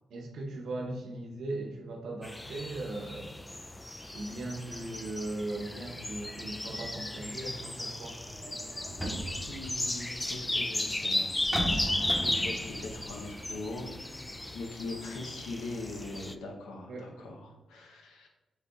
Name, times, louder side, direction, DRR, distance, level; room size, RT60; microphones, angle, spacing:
voice 1, 0.1-3.3 4.1-8.2 9.9-10.1 16.9-17.1, right 2 dB, 75° right, 0 dB, 0.8 m, -38 dB
sound 1, 2.2-16.3, left 1 dB, 15° left, 0.3 m, -35 dB
sound 2, 8.3-10.5 11.3-14.2 14.5-14.6, right 1 dB, ahead, 1.0 m, -37 dB
voice 2, 9.4-18.3, left 2 dB, 90° left, 1 dB, 0.7 m, -41 dB
6.5 x 3.4 x 2.3 m, 1.1 s
supercardioid pair, 45°, 0 cm